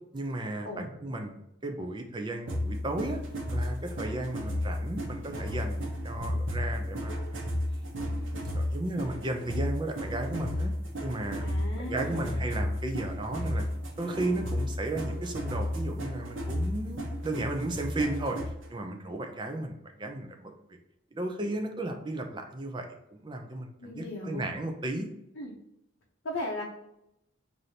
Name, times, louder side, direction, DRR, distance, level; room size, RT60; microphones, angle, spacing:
voice 1, 0.1-3.2 3.5-7.5 8.1-10.7 11.0-11.4 11.8-13.7 14.0-18.4 18.7-20.5 21.1-25.1, right 2 dB, 25° right, 4 dB, 0.5 m, -34 dB
sound 1, 2.5-18.7, left 1 dB, 65° right, 0.9 m, -33 dB
voice 2, 11.4-12.4 23.8-24.4 25.4-25.5 26.2-26.6, left 1 dB, 60° left, -3 dB, 0.7 m, -37 dB
4.8 x 2.7 x 2.8 m, 0.85 s
head